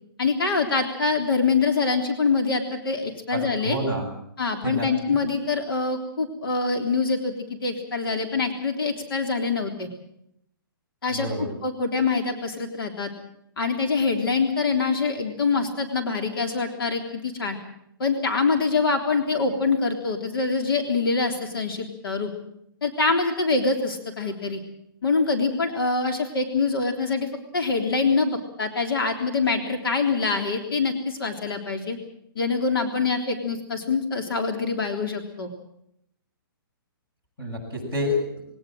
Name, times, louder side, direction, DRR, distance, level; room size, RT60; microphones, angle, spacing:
voice 1, 0.2-3.8 4.4-7.4 7.6-9.9 11.0-13.1 13.6-17.6 18.0-22.3 22.8-24.6 25.0-32.0 32.4-35.5, left 4 dB, 75° left, 4 dB, 3.5 m, -25 dB
voice 2, 3.3-4.1 4.6-5.1 11.1-11.5 37.4-38.2, left 1 dB, 15° left, -1 dB, 7.8 m, -28 dB
21.5 x 19.0 x 7.7 m, 0.74 s
hypercardioid pair, 175°, 12 cm